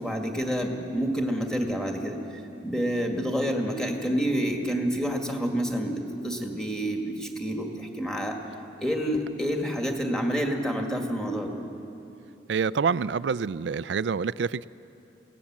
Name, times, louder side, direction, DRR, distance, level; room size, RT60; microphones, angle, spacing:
voice 1, 0.0-2.2 2.6-8.4 8.8-11.5, equal, 5° left, 2 dB, 2.0 m, -28 dB
voice 2, 12.5-14.7, right 5 dB, 75° right, 18 dB, 0.4 m, -27 dB
24.0 x 17.5 x 7.5 m, 2.9 s
head